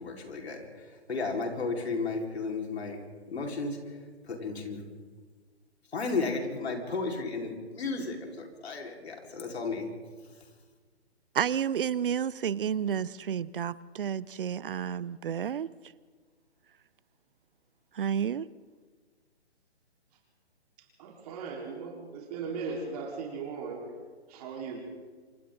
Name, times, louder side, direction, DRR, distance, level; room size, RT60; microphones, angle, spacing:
voice 1, 0.0-3.0 3.3-4.8 5.9-9.9, left 3 dB, 65° left, 1 dB, 4.6 m, -34 dB
voice 2, 11.3-15.7 17.9-18.5, right 8 dB, 50° right, 20 dB, 0.7 m, -30 dB
voice 3, 21.0-23.8 24.3-24.8, right 5 dB, 35° right, -1 dB, 4.2 m, -38 dB
27.5 x 25.0 x 3.9 m, 1.5 s
figure-of-eight pair, 145°, 34 cm